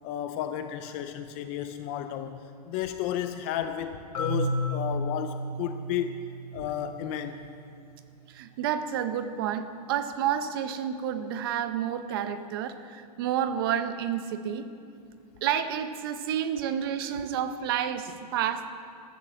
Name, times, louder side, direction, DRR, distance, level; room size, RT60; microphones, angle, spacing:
voice 1, 0.0-6.1 6.5-7.4, left 10 dB, 20° left, 8 dB, 0.4 m, -33 dB
Marimba xylophone, 4.1-8.0, equal, 60° left, 2.7 m, -33 dB
voice 2, 8.3-14.7 15.4-18.7, right 9 dB, 35° right, 10 dB, 0.8 m, -30 dB
13.5 x 13.0 x 7.4 m, 2.4 s
hypercardioid pair, 170°, 21 cm